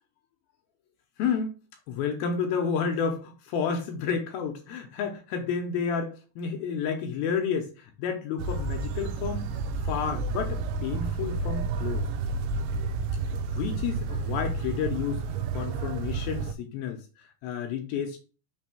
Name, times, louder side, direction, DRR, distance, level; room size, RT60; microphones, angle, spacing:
voice 1, 1.2-1.6 1.9-9.5 9.8-12.0 13.5-15.2 15.5-17.0 17.4-18.2, left 6 dB, 75° left, 4 dB, 2.3 m, -30 dB
sound 1, 8.4-16.5, right 4 dB, 85° right, 2.7 m, -31 dB
6.2 x 3.3 x 6.0 m, 0.36 s
omnidirectional pair, 5.0 m